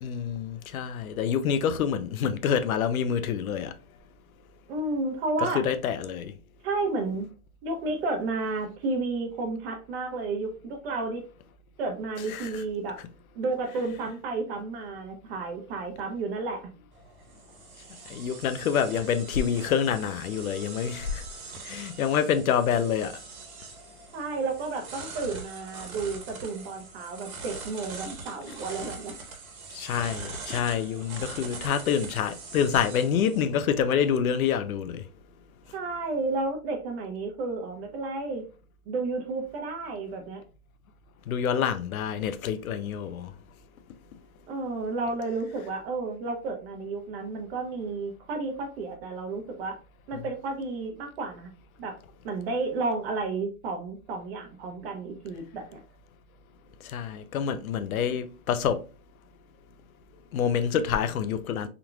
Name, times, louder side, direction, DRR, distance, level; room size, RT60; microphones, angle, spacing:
voice 1, 0.0-3.7 5.4-6.3 12.3-12.6 18.1-21.2 21.6-23.2 29.7-35.0 41.3-43.3 56.8-58.8 60.3-61.7, left 8 dB, 80° left, 0.7 m, -27 dB
voice 2, 4.7-5.6 6.6-7.3 7.6-11.2 11.8-13.0 13.3-16.6 24.1-29.2 35.7-38.4 38.9-40.4 44.5-49.8 50.1-51.5 51.8-52.0 52.2-55.8, right 3 dB, 45° right, 1.1 m, -32 dB
sound 1, 16.9-34.1, right 4 dB, 80° right, 1.5 m, -43 dB
3.7 x 3.0 x 2.3 m
hypercardioid pair, 145°, 42 cm